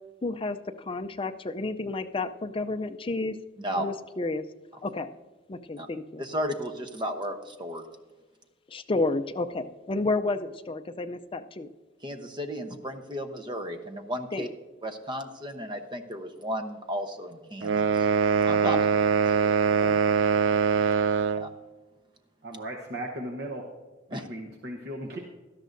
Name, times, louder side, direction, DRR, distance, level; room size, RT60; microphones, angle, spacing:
voice 1, 0.2-3.4 3.8-4.4 4.8-5.1 5.5-6.2 8.7-11.7 14.3-14.4 18.6-18.8 19.8-20.0, left 2 dB, 30° left, 8 dB, 0.5 m, -31 dB
voice 2, 6.2-7.8 12.0-14.5 14.8-18.1 18.4-18.8 19.3-19.5 21.4-21.5 24.1-24.3, equal, 25° right, 7 dB, 0.9 m, -34 dB
sound 1, 17.6-21.5, right 7 dB, 80° right, 0.4 m, -23 dB
voice 3, 22.4-23.7 24.1-25.2, right 1 dB, 60° right, 2 dB, 1.0 m, -36 dB
17.0 x 12.5 x 2.6 m, 1.2 s
head